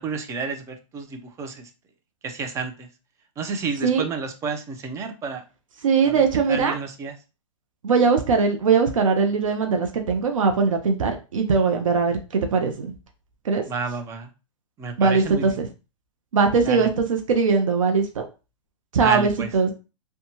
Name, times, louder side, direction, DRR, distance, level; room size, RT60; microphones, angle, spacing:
voice 1, 0.0-1.7 2.2-2.9 3.4-5.4 6.0-6.2 6.5-7.1 13.7-14.3 14.8-15.6 16.6-16.9 19.0-19.5, right 4 dB, 20° right, 6 dB, 0.4 m, -30 dB
voice 2, 5.8-6.8 7.8-12.9 13.4-13.6 15.0-15.7 16.3-18.2 18.9-19.7, right 5 dB, 85° right, 5 dB, 0.5 m, -20 dB
2.7 x 2.2 x 2.8 m, 0.31 s
hypercardioid pair, 130°, 17 cm